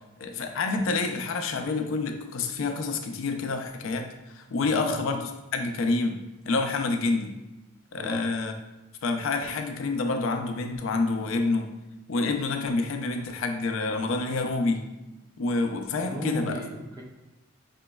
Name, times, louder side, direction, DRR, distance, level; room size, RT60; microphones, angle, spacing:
voice 1, 0.2-6.2 6.5-7.3 7.9-8.5 9.0-11.7 12.1-14.8 15.4-16.6, left 3 dB, 75° left, 5 dB, 0.4 m, -28 dB
voice 2, 15.9-17.0, equal, 15° right, -1 dB, 0.4 m, -35 dB
4.9 x 3.0 x 2.2 m, 0.99 s
head